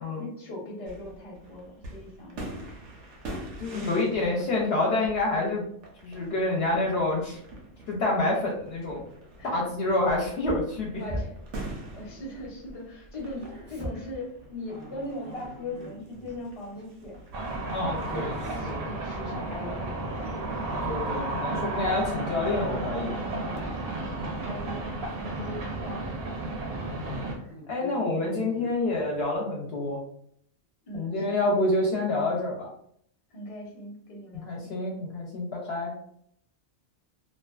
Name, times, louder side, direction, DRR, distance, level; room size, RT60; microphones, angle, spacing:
voice 1, 0.1-2.7 3.6-4.6 9.4-9.7 10.9-11.3 11.9-17.2 18.3-20.5 24.3-24.9 25.4-26.3 30.9-31.5 33.3-34.8, left 1 dB, 35° left, -2 dB, 0.7 m, -40 dB
sound 1, 0.8-18.8, right 1 dB, 85° right, 1.0 m, -45 dB
voice 2, 3.6-5.6 6.0-7.4 7.9-9.0 9.4-11.0 17.7-18.9 20.8-23.2 26.9-27.4 27.7-30.0 30.9-32.7 34.4-35.9, left 2 dB, 65° left, -2 dB, 0.7 m, -28 dB
Dog, 10.4-12.7 13.0-16.3 16.7-17.0 17.8-20.9 21.3-22.1 22.5-22.9 23.2-24.5 24.9-25.2 25.8-25.9 26.2-26.3 27.0-29.3, equal, 10° right, 0.5 m, -43 dB
sound 2, 17.3-27.4, right 2 dB, 65° right, 0.7 m, -32 dB
2.5 x 2.2 x 2.3 m, 0.68 s
omnidirectional pair, 1.2 m